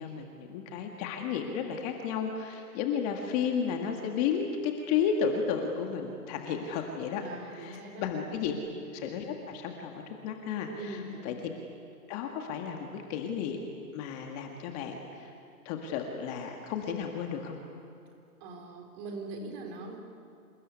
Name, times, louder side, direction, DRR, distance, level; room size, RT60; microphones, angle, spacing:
voice 1, 0.0-7.2 7.5-8.5 9.0-11.0 11.2-11.5 12.1-13.6 13.9-15.3 15.7-17.6, left 7 dB, 25° left, 3 dB, 1.9 m, -33 dB
voice 2, 7.1-8.1 8.4-8.6 10.6-11.4 18.4-20.0, right 2 dB, 30° right, 3 dB, 3.9 m, -41 dB
27.5 x 20.0 x 9.7 m, 2.5 s
hypercardioid pair, 150°, 46 cm